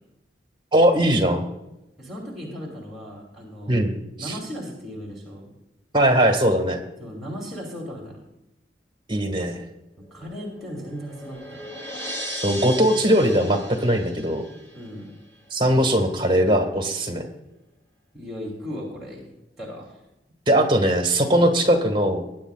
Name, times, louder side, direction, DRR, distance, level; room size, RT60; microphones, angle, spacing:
voice 1, 0.7-1.4 3.7-4.3 5.9-6.8 9.1-9.6 12.4-14.4 15.5-17.2 20.5-22.2, right 1 dB, 30° right, 3 dB, 1.6 m, -20 dB
voice 2, 2.0-3.8 4.2-5.5 7.0-8.2 10.1-11.8 14.7-15.1 18.1-20.0, equal, ahead, -4 dB, 2.9 m, -36 dB
sound 1, 10.0-15.1, equal, 15° left, 2.8 m, -37 dB
21.5 x 9.7 x 2.4 m, 0.92 s
head